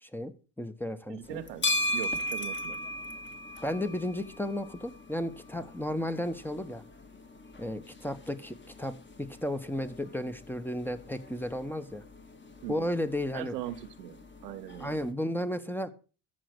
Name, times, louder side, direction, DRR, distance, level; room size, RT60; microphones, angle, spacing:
voice 1, 0.0-1.4 3.6-6.8 7.6-12.0 12.7-13.5 14.8-15.9, left 1 dB, 5° left, 1.2 m, -34 dB
voice 2, 1.1-2.8 12.6-12.9 13.3-15.0, right 13 dB, 90° right, 1.0 m, -41 dB
sound 1, 1.2-15.1, left 1 dB, 25° left, 1.9 m, -38 dB
14.0 x 5.2 x 6.6 m
hypercardioid pair, 60°, 47 cm